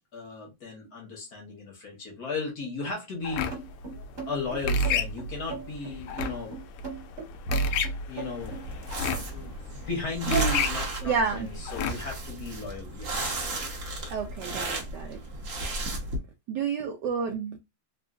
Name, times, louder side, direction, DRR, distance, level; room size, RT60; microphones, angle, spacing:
voice 1, 0.1-3.5 4.3-6.5 8.1-8.6 9.1-13.4, left 3 dB, 55° left, 1.2 m, -35 dB
sound 1, 3.2-12.2, left 2 dB, 90° left, 1.5 m, -31 dB
sound 2, 3.5-8.7, right 5 dB, 35° right, 1.6 m, -38 dB
sound 3, 8.4-16.2, right 2 dB, 55° right, 0.9 m, -35 dB
voice 2, 11.0-11.5 14.1-15.2 16.5-17.6, right 6 dB, 75° right, 0.9 m, -29 dB
3.6 x 2.4 x 2.4 m
omnidirectional pair, 2.3 m